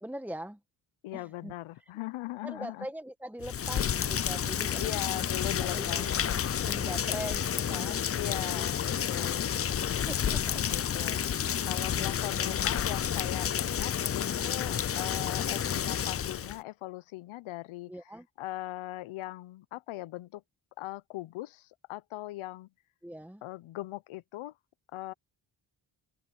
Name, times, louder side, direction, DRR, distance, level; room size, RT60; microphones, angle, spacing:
voice 1, 0.0-0.6 1.1-1.5 2.4-5.3 5.6-6.2 6.6-8.7 10.1-10.6 17.9-18.3 23.0-23.4, right 1 dB, 5° right, 1.8 m, -42 dB
voice 2, 1.0-2.9 4.8-6.0 8.1-9.4 10.5-17.9 18.4-20.4 20.8-22.7 23.4-24.5 24.9-25.1, left 17 dB, 85° left, 0.8 m, -40 dB
Rain, 3.4-16.6, left 9 dB, 30° left, 0.5 m, -30 dB
open air
cardioid pair, 70°, 47 cm